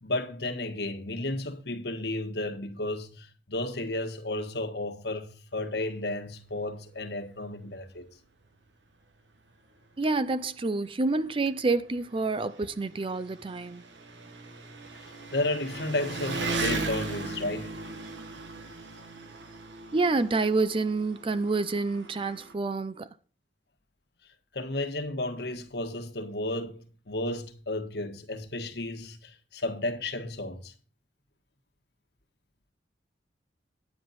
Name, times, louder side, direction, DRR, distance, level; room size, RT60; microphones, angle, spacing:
voice 1, 0.0-8.1 15.0-17.8 24.5-30.7, left 2 dB, 65° left, 1.4 m, -33 dB
Engine, 8.0-8.1 8.4-8.5 9.5-9.6 9.8-22.5, right 3 dB, 85° right, 1.4 m, -38 dB
voice 2, 10.0-13.8 19.9-23.1, right 3 dB, 30° right, 0.5 m, -28 dB
9.9 x 9.3 x 4.1 m
head